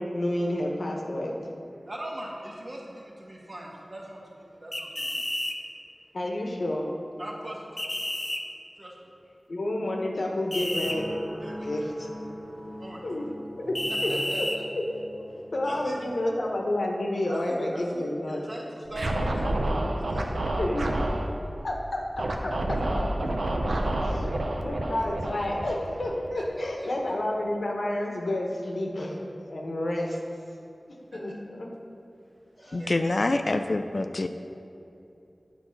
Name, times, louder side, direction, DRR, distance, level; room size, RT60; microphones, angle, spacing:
voice 1, 0.0-1.3 6.1-6.9 9.5-11.1 11.6-12.1 13.0-13.3 13.6-14.1 14.8-14.9 15.1-18.4 20.6-20.9 21.6-23.3 24.0-24.3 24.6-30.2 30.9-31.7 32.6-32.9, left 1 dB, 80° left, 0 dB, 1.1 m, -30 dB
voice 2, 1.8-5.2 7.2-7.8 8.8-9.0 11.4-13.3 14.0-14.6 15.3-16.0 17.3-19.7 20.0-20.4 23.8-23.9 26.3-26.9 31.1-31.2 32.5-33.0, right 1 dB, 45° right, -3 dB, 1.5 m, -41 dB
sound 1, 4.7-5.6 7.8-8.4 10.5-11.0 13.7-14.6, left 1 dB, 20° left, 0.7 m, -30 dB
sound 2, 10.5-16.1, equal, 5° right, 1.0 m, -42 dB
Scratching (performance technique), 18.9-21.2 22.2-26.5, right 1 dB, 90° right, 0.7 m, -28 dB
voice 3, 32.7-34.3, left 2 dB, 60° left, 8 dB, 0.3 m, -26 dB
9.0 x 4.0 x 5.8 m, 2.8 s
wide cardioid pair, 70°, 0 cm